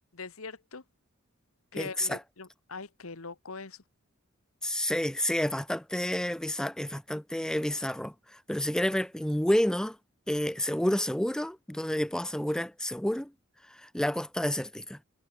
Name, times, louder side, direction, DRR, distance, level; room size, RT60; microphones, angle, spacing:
voice 1, 0.1-0.8 1.7-3.8, left 4 dB, 85° left, 1.6 m, -42 dB
voice 2, 1.7-2.2 4.6-10.0 10.3-13.3 13.6-15.0, left 1 dB, 5° left, 0.4 m, -30 dB
head